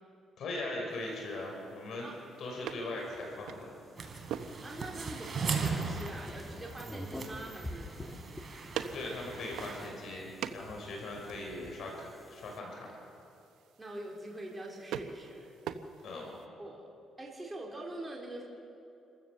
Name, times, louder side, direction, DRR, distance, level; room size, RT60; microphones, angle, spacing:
voice 1, 0.4-2.1 2.4-3.8 8.9-12.9 16.0-16.3, left 2 dB, 70° left, 0 dB, 6.0 m, -40 dB
sound 1, 0.9-16.5, right 8 dB, 85° right, 1.0 m, -46 dB
Fluorescent Lamp Kolyan House Porch, 3.0-12.6, left 1 dB, 15° left, 2.1 m, -48 dB
sound 2, 4.0-9.9, right 5 dB, 40° right, 3.7 m, -38 dB
voice 2, 4.6-7.9 13.8-15.5 16.6-16.8 17.2-18.4, right 1 dB, 15° right, -3 dB, 3.7 m, -44 dB
28.0 x 15.0 x 6.9 m, 2.7 s
cardioid pair, 90°, 0 cm